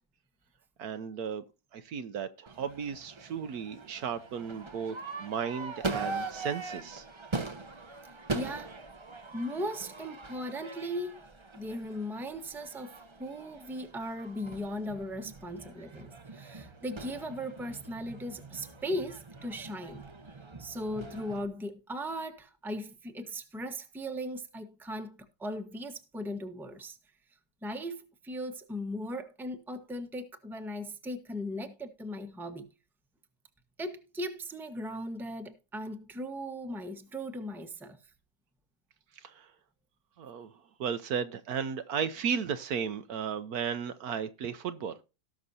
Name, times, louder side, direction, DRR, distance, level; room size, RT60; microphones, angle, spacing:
voice 1, 0.8-1.4 1.7-7.0 39.1-39.5 40.2-40.5 40.8-45.0, right 7 dB, 65° right, 1.1 m, -35 dB
Crowd / Fireworks, 2.5-21.5, right 3 dB, 25° right, 0.6 m, -42 dB
voice 2, 8.3-8.8 9.3-11.2 11.5-20.0 20.6-27.0 27.6-32.7 33.8-38.0, equal, ahead, 1.0 m, -38 dB
18.0 x 6.2 x 2.7 m
omnidirectional pair, 1.8 m